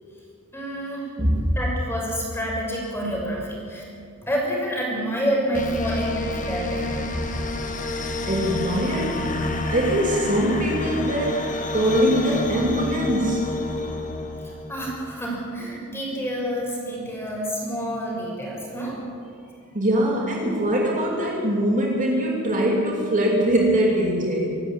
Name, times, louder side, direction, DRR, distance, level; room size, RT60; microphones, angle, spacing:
voice 1, 0.5-1.1 1.5-3.8 4.2-7.0 14.7-19.0, equal, 10° left, -2 dB, 6.4 m, -28 dB
voice 2, 1.2-1.5 7.1-7.2 8.3-9.2 9.7-13.4 19.7-24.5, right 1 dB, 35° right, -2 dB, 2.9 m, -22 dB
sound 1, 5.5-15.0, left 2 dB, 35° left, 1.7 m, -29 dB
25.5 x 12.5 x 8.8 m, 2.4 s
head